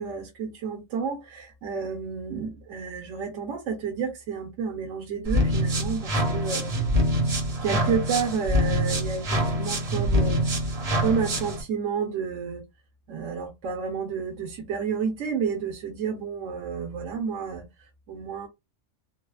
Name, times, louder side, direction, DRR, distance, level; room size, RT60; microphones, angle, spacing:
voice 1, 0.0-6.7 7.6-10.4 11.0-12.6 13.1-17.6 18.1-18.5, right 6 dB, 80° right, 1.1 m, -30 dB
sound 1, 5.2-11.6, equal, 40° right, 0.7 m, -25 dB
3.2 x 2.0 x 2.3 m
omnidirectional pair, 1.3 m